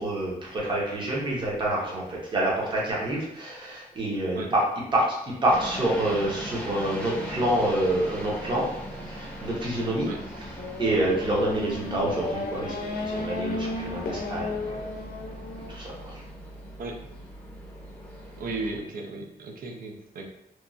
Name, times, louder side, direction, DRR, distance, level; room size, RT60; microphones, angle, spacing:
voice 1, 0.0-4.6 4.9-8.7 9.1-10.1 10.8-14.9 15.7-16.2, right 1 dB, 30° right, -4 dB, 0.7 m, -27 dB
sound 1, 5.5-18.8, equal, 5° left, 0.6 m, -40 dB
Race car auto racing / Accelerating revving vroom, 10.6-15.7, left 3 dB, 80° left, 0.5 m, -34 dB
voice 2, 18.4-20.2, right 3 dB, 65° right, 3 dB, 0.4 m, -35 dB
2.9 x 2.3 x 2.5 m, 0.80 s
wide cardioid pair, 165°, 16 cm